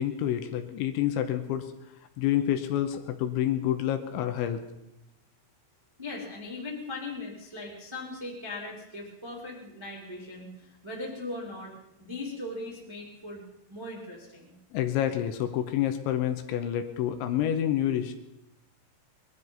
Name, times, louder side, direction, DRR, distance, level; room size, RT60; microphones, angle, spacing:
voice 1, 0.0-1.7 2.2-4.6 14.7-18.1, left 11 dB, 80° left, 7 dB, 3.1 m, -28 dB
voice 2, 6.0-13.4 13.7-14.6, left 2 dB, 10° right, -3 dB, 1.7 m, -39 dB
21.0 x 12.5 x 5.5 m, 0.88 s
omnidirectional pair, 5.6 m